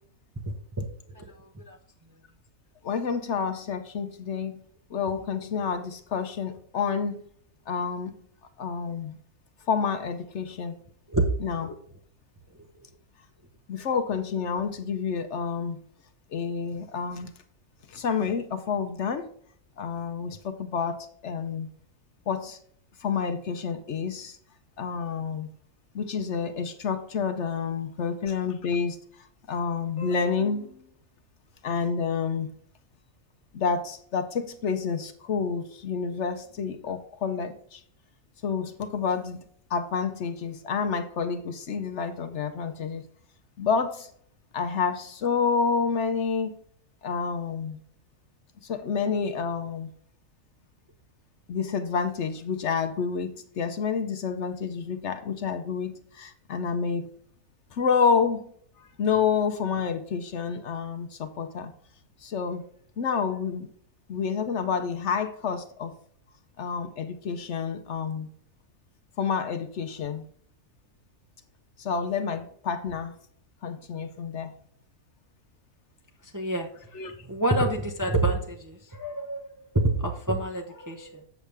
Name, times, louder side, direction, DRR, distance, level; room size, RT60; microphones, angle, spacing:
voice 1, 0.5-0.9 1.1-1.2 1.7-1.8 11.1-11.6 76.3-76.7 77.2-81.2, right 2 dB, 20° right, 2 dB, 0.6 m, -27 dB
voice 2, 2.8-4.6 4.9-7.2 7.7-8.1 8.6-9.2 9.7-10.8 11.4-11.7 13.7-15.8 16.3-17.3 17.9-19.3 19.8-21.7 22.3-22.6 23.0-24.4 24.8-25.5 25.9-29.0 29.5-30.8 31.6-32.5 33.5-37.8 38.4-39.4 39.7-43.0 43.6-44.1 44.5-46.6 47.0-47.8 48.6-49.9 51.5-57.1 57.7-58.5 59.0-61.7 62.2-62.6 63.0-63.7 64.1-65.9 66.6-68.3 69.2-70.3 71.8-73.1 73.6-74.5 76.9-77.1, left 6 dB, 60° left, 8 dB, 0.9 m, -29 dB
7.4 x 6.7 x 3.4 m, 0.62 s
omnidirectional pair, 1.4 m